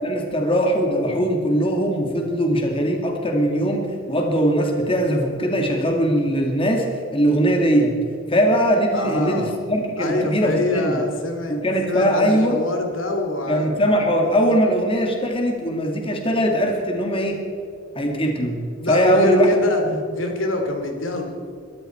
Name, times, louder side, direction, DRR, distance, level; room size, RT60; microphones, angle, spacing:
voice 1, 0.0-6.9 7.1-7.9 8.3-11.0 11.5-12.6 13.5-17.4 18.0-18.6 18.9-19.5 19.8-20.0, equal, 30° left, 2 dB, 2.2 m, -20 dB
voice 2, 8.9-9.5 10.0-13.7 14.5-14.6 18.8-19.8 20.1-21.3, left 2 dB, 80° left, 3 dB, 2.9 m, -25 dB
22.0 x 13.5 x 4.5 m, 2.4 s
head